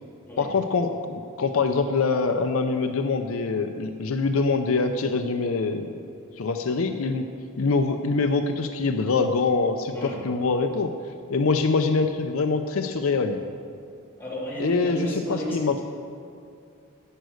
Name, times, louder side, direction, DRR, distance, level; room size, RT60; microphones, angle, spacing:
voice 1, 0.4-5.9 6.4-7.3 7.6-10.9 11.3-13.4 14.6-15.8, left 4 dB, 70° left, 6 dB, 0.6 m, -24 dB
voice 2, 9.9-10.3 14.2-15.8, equal, 10° left, -6 dB, 3.0 m, -32 dB
11.0 x 9.1 x 6.4 m, 2.4 s
head